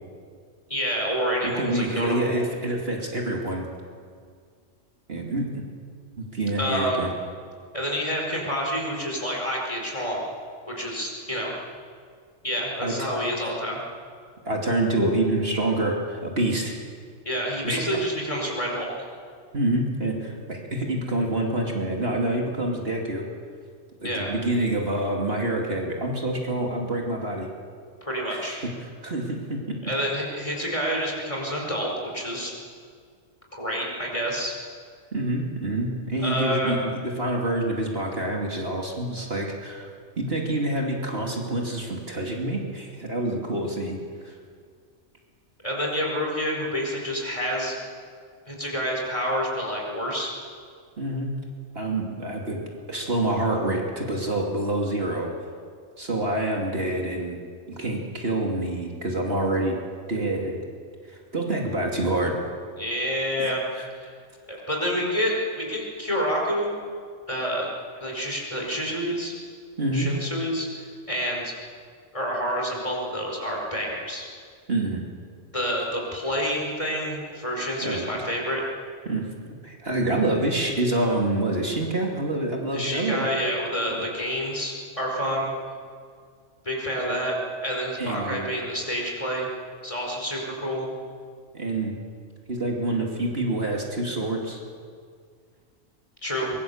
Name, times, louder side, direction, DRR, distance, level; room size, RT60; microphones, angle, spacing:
voice 1, 0.7-2.4 6.6-7.0 7.7-10.2 10.7-11.5 12.4-13.8 17.2-18.9 24.0-24.3 28.0-28.6 29.8-32.5 33.5-34.5 36.2-36.8 45.6-47.8 48.5-50.3 62.8-63.6 64.0-64.1 64.5-66.7 67.3-67.7 68.0-69.3 69.9-71.5 72.1-74.3 75.5-78.6 82.7-85.5 86.6-87.4 87.6-89.5 89.8-90.9 96.2-96.5, equal, 25° left, -1 dB, 5.1 m, -28 dB
voice 2, 1.4-3.7 5.1-5.6 6.2-7.1 12.8-12.9 13.4-13.5 14.5-16.7 17.6-17.8 19.5-23.3 24.0-27.5 28.3-28.7 29.0-29.8 35.1-39.9 40.2-44.0 44.2-44.3 51.0-51.3 51.7-52.6 52.9-55.3 56.0-57.4 57.7-59.8 60.1-60.6 61.3-62.3 63.4-63.9 69.8-70.1 74.7-75.0 77.8-78.0 79.0-79.3 79.6-83.3 83.9-84.0 88.0-88.5 91.5-91.9 92.5-94.6, right 1 dB, 50° right, 0 dB, 2.8 m, -27 dB
23.5 x 22.5 x 7.2 m, 2.1 s
omnidirectional pair, 1.3 m